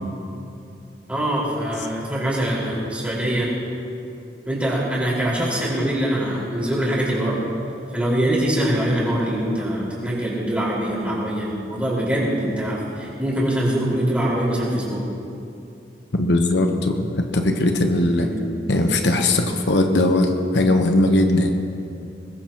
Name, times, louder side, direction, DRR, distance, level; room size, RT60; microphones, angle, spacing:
voice 1, 1.1-3.5 4.4-7.3 7.9-15.0 18.1-18.4, right 1 dB, 5° right, -7 dB, 4.8 m, -23 dB
voice 2, 16.1-18.3 18.7-21.7, left 1 dB, 80° left, 4 dB, 1.1 m, -19 dB
21.0 x 20.5 x 3.0 m, 2.7 s
head